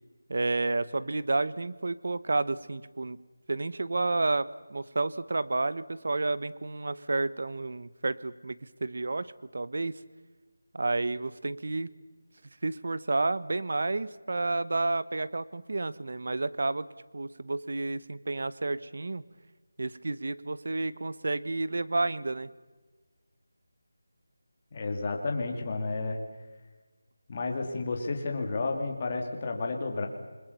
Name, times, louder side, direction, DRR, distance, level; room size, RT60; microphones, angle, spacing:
voice 1, 0.3-3.2 3.5-9.9 10.7-11.9 12.6-16.9 17.1-19.2 19.8-22.5, right 2 dB, 45° right, 17 dB, 0.9 m, -30 dB
voice 2, 24.7-26.2 27.3-30.1, left 3 dB, 20° left, 2 dB, 2.3 m, -31 dB
28.0 x 21.0 x 6.9 m, 1.3 s
figure-of-eight pair, 180°, 0 cm